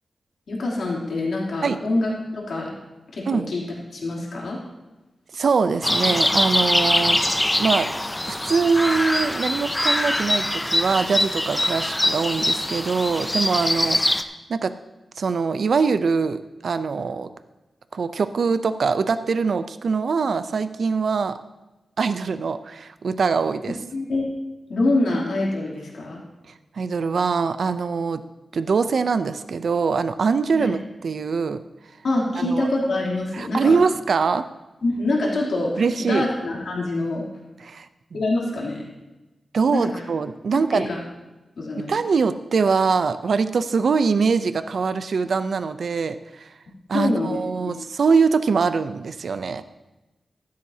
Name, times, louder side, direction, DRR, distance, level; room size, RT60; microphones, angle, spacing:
voice 1, 0.5-2.7 3.1-3.6 3.9-4.6 23.9-24.3 24.7-26.2 30.5-30.7 32.0-33.8 34.8-37.2 38.1-38.8 39.7-40.0 40.7-41.0 41.6-41.9 46.9-47.4 47.7-47.8, left 2 dB, 75° left, -3 dB, 3.0 m, -25 dB
voice 2, 5.3-7.9 8.3-14.7 15.2-17.3 17.9-21.4 22.0-23.8 26.7-28.2 28.5-31.6 32.4-32.7 33.3-34.5 35.8-36.3 37.6-37.9 38.1-38.2 39.5-40.9 41.8-46.5 46.9-49.6, right 5 dB, 60° right, 12 dB, 0.5 m, -23 dB
sound 1, 5.8-14.2, left 1 dB, 10° left, 0.5 m, -23 dB
14.0 x 12.5 x 2.8 m, 1.1 s
wide cardioid pair, 150°, 0 cm